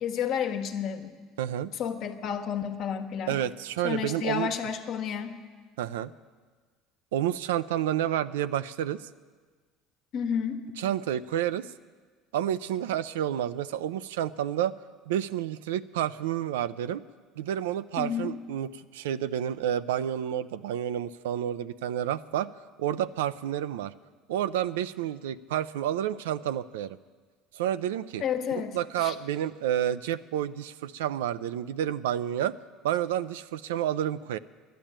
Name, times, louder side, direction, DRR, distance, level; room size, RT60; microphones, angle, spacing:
voice 1, 0.0-1.2 1.8-3.4 3.8-5.4 10.1-10.6 18.0-18.3 28.2-29.1, left 7 dB, 60° left, 7 dB, 1.3 m, -31 dB
voice 2, 1.4-1.7 3.3-4.5 5.8-6.1 7.1-9.0 10.8-11.7 12.3-14.8 15.1-17.0 17.4-22.5 22.8-23.9 24.3-27.0 27.5-28.2 28.5-32.5 32.8-34.4, right 11 dB, 90° right, 14 dB, 0.4 m, -30 dB
12.0 x 10.5 x 8.8 m, 1.5 s
supercardioid pair, 85°, 0 cm